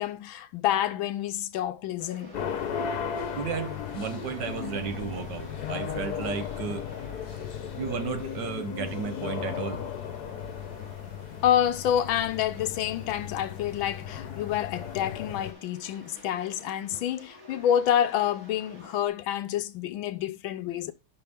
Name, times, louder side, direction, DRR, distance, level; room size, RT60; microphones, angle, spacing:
voice 1, 0.0-2.3 11.4-20.9, left 10 dB, 75° left, 1.4 m, -28 dB
sound 1, 2.0-19.1, right 1 dB, 30° right, 4.3 m, -51 dB
sound 2, 2.3-15.5, left 8 dB, 55° left, 1.3 m, -36 dB
voice 2, 3.3-6.9 7.8-9.8 16.9-17.0, right 7 dB, 65° right, 1.4 m, -34 dB
11.0 x 5.6 x 3.5 m
omnidirectional pair, 2.3 m